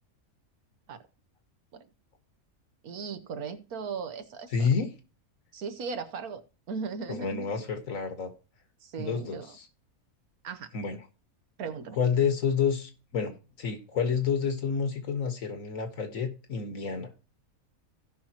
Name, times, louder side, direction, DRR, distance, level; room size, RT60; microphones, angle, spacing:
voice 1, 2.8-4.5 5.5-6.4 6.7-7.6 8.8-9.5 10.4-10.7 11.6-12.0, right 5 dB, 85° right, 1.4 m, -37 dB
voice 2, 4.5-4.9 7.1-8.3 9.0-9.7 10.7-11.0 11.9-13.3 13.6-17.1, left 6 dB, 65° left, 1.8 m, -29 dB
16.5 x 5.7 x 2.9 m
omnidirectional pair, 1.5 m